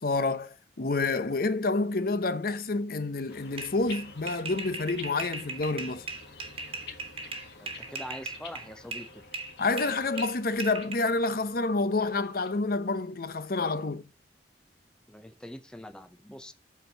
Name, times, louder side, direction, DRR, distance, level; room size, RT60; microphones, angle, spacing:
voice 1, 0.0-6.0 9.6-14.0, left 3 dB, 55° left, 0.7 m, -28 dB
sound 1, 3.3-12.6, left 4 dB, 70° left, 1.9 m, -49 dB
sound 2, 3.6-9.1 9.3-10.9, right 3 dB, 35° right, 1.5 m, -38 dB
voice 2, 7.6-9.2 15.1-16.5, equal, 5° left, 0.6 m, -44 dB
8.3 x 4.5 x 6.5 m
head